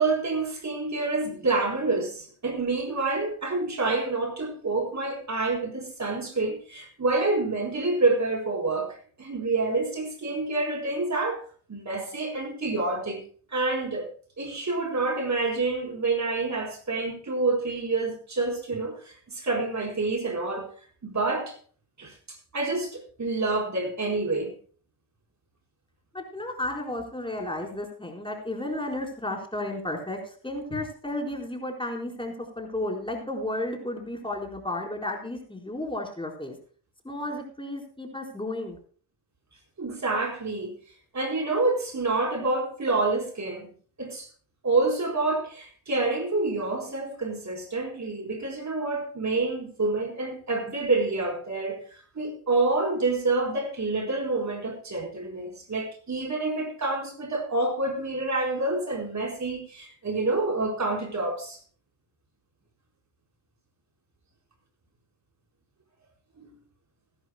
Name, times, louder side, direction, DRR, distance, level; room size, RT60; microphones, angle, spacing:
voice 1, 0.0-11.4 11.7-13.2 13.5-14.1 14.4-20.7 21.0-21.5 22.0-24.5 39.8-40.8 41.1-43.7 44.0-44.3 44.6-51.8 52.2-61.6 66.4-66.5, right 3 dB, 40° right, 4.5 m, -28 dB
voice 2, 26.1-36.6 37.0-38.8, left 1 dB, 10° left, 4.2 m, -33 dB
20.5 x 11.5 x 2.2 m
cardioid pair, 70°, 44 cm